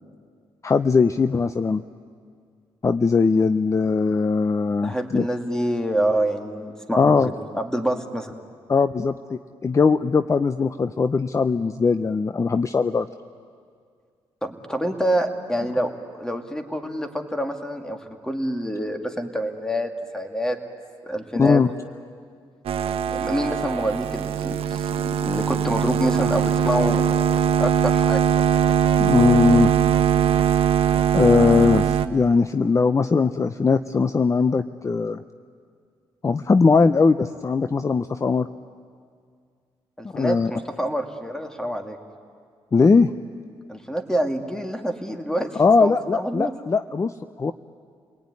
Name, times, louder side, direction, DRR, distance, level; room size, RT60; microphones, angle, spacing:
voice 1, 0.6-1.8 2.8-5.3 7.0-7.3 8.7-13.1 21.4-21.7 29.0-29.7 31.1-35.2 36.2-38.5 40.1-40.5 42.7-43.1 45.6-47.5, left 4 dB, 30° left, 11 dB, 0.6 m, -20 dB
voice 2, 4.8-8.3 14.4-18.0 18.2-20.6 21.0-21.6 23.1-27.1 27.6-28.2 40.0-42.0 43.7-46.5, equal, 5° left, 5 dB, 2.4 m, -27 dB
sound 1, 22.6-32.1, right 8 dB, 80° right, 1.1 m, -21 dB
30.0 x 19.5 x 9.7 m, 2.1 s
cardioid pair, 85°, 10 cm